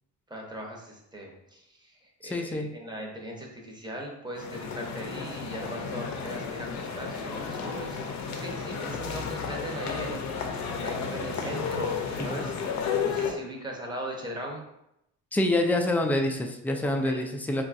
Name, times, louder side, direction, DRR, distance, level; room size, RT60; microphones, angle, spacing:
voice 1, 0.3-8.1 8.3-12.5 13.0-14.6 16.8-17.2, right 1 dB, 15° right, -1 dB, 0.8 m, -39 dB
voice 2, 2.3-2.7 12.3-12.4 15.3-17.6, left 1 dB, 5° left, 3 dB, 0.3 m, -26 dB
sound 1, 4.4-13.3, left 6 dB, 70° left, 0.5 m, -32 dB
3.8 x 2.3 x 2.5 m, 0.82 s
cardioid pair, 90°, 30 cm